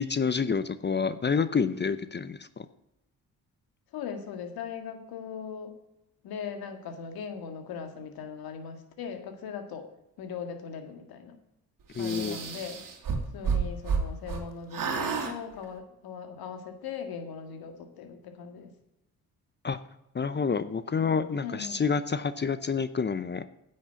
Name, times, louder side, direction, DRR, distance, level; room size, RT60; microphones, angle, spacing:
voice 1, 0.0-2.7 11.9-12.4 19.6-19.8 20.1-23.4, left 5 dB, 30° left, 13 dB, 0.7 m, -28 dB
voice 2, 3.9-5.8 6.2-9.9 10.2-11.4 12.0-12.8 13.3-18.7 21.4-21.8, left 6 dB, 80° left, 6 dB, 2.0 m, -39 dB
sound 1, 12.0-14.4 14.7-15.3, right 6 dB, 60° right, 2.2 m, -30 dB
9.9 x 6.5 x 8.2 m, 0.86 s
supercardioid pair, 60°, 36 cm